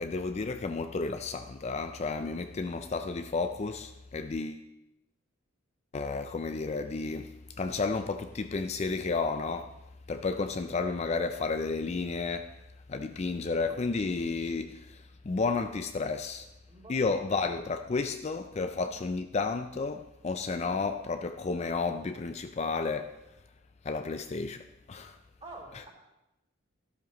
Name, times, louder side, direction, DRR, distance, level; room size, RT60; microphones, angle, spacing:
voice 1, 0.0-4.6 5.9-9.8 10.1-12.6 12.9-16.5 16.9-23.2 23.8-25.2 25.7-25.8, left 4 dB, 30° left, 0.4 m, -32 dB
voice 2, 16.7-17.4 18.8-18.9 25.4-25.9, right 2 dB, 30° right, 3.1 m, -48 dB
13.0 x 12.0 x 3.0 m
head